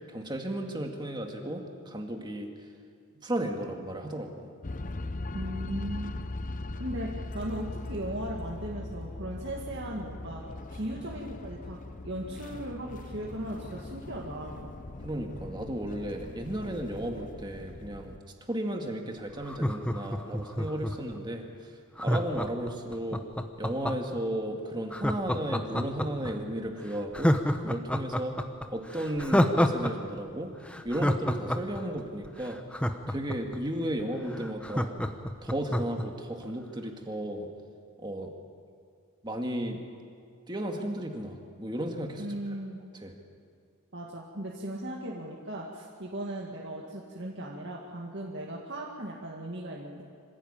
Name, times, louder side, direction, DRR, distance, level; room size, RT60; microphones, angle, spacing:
voice 1, 0.1-2.5 3.2-4.5 15.0-18.2 18.5-21.5 22.0-23.2 23.6-28.4 28.7-30.5 30.8-32.6 33.1-34.9 35.4-37.5 38.0-38.3 39.2-39.8 40.5-42.2 43.0-43.1, right 1 dB, 20° right, 2 dB, 2.0 m, -34 dB
sound 1, 4.6-18.2, left 2 dB, 35° left, 0.7 m, -40 dB
voice 2, 5.3-6.2 6.8-10.4 10.7-11.8 12.0-14.7 42.2-42.8 43.9-50.0, right 1 dB, 50° right, -3 dB, 2.2 m, -37 dB
Laughter, 19.4-21.1 22.0-24.2 24.9-26.3 26.7-26.8 27.1-29.9 30.2-30.3 30.7-33.6 34.0-34.1 34.3-36.0 36.4-36.5, equal, 5° left, 0.9 m, -28 dB
25.5 x 16.0 x 8.8 m, 2.3 s
head